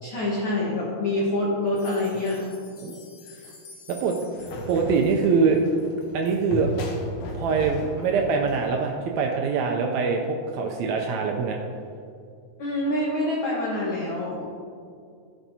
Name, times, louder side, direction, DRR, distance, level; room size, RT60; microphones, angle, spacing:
voice 1, 0.0-2.5 3.2-3.5 12.6-14.5, left 1 dB, 50° left, -6 dB, 1.7 m, -26 dB
sound 1, 1.7-6.4 6.9-7.0 7.4-7.5 8.0-8.1, left 4 dB, 90° left, 1.1 m, -50 dB
sound 2, 4.3-9.2, equal, 70° left, 2.0 m, -36 dB
voice 2, 4.7-5.6 6.1-6.7 7.3-11.6, right 5 dB, 80° right, 2 dB, 1.8 m, -23 dB
13.5 x 6.0 x 2.8 m, 2.3 s
omnidirectional pair, 3.4 m